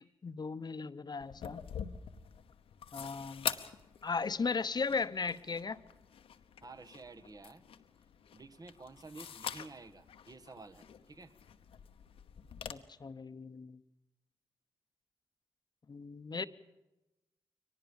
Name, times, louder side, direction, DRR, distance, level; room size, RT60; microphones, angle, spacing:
voice 1, 0.0-1.6 2.9-3.5 4.0-5.8 12.7-13.8 15.9-16.4, left 4 dB, 45° left, 13 dB, 1.0 m, -37 dB
sound 1, 1.2-12.7, left 8 dB, 80° left, 1.0 m, -45 dB
voice 2, 6.6-7.6 8.3-11.3 16.4-16.5, right 3 dB, 40° right, 8 dB, 1.5 m, -51 dB
22.5 x 20.0 x 7.2 m, 1.0 s
supercardioid pair, 40°, 10 cm